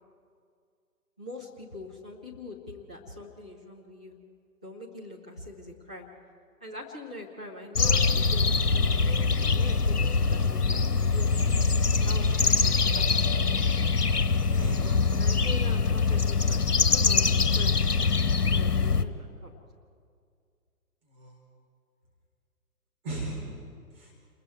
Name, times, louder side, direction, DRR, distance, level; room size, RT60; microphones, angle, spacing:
voice 1, 1.2-4.1 4.6-6.1 6.6-11.5 12.0-13.4 15.2-16.7 16.9-19.5, left 2 dB, 5° right, -5 dB, 0.5 m, -42 dB
sound 1, 7.8-19.0, left 4 dB, 75° left, 1.3 m, -24 dB
voice 2, 14.1-15.1 21.0-21.4 23.0-23.5 23.9-24.1, right 2 dB, 40° right, -2 dB, 4.7 m, -37 dB
29.0 x 21.0 x 4.7 m, 2.2 s
figure-of-eight pair, 135°, 46 cm